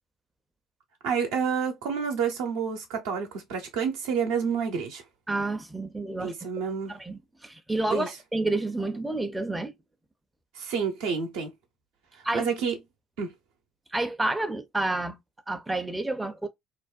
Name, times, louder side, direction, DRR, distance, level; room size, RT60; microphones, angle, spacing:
voice 1, 1.0-5.0 6.2-6.9 7.9-8.1 10.6-11.5 12.3-12.8 13.2-13.3, right 6 dB, 75° right, 0.7 m, -29 dB
voice 2, 5.3-6.3 6.9-9.7 12.2-12.5 13.9-15.2 15.5-16.5, right 2 dB, 10° right, 0.5 m, -29 dB
2.5 x 2.1 x 2.3 m
hypercardioid pair, 60°, 0 cm